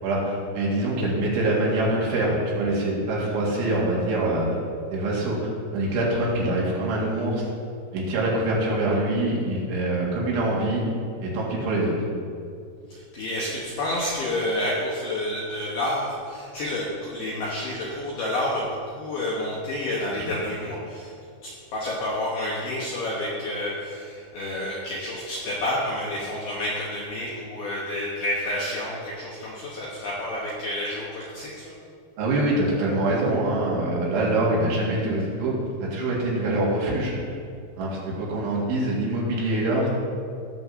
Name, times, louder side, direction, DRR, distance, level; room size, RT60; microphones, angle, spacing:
voice 1, 0.0-4.5 4.9-5.4 5.7-7.5 7.9-10.8 11.2-12.0 20.1-20.3 32.2-35.5 35.8-37.1 37.8-39.9, right 1 dB, 70° right, -5 dB, 4.1 m, -24 dB
voice 2, 12.9-21.1 21.4-31.6, left 1 dB, 75° left, -6 dB, 2.3 m, -29 dB
17.5 x 7.1 x 2.7 m, 2.3 s
omnidirectional pair, 5.8 m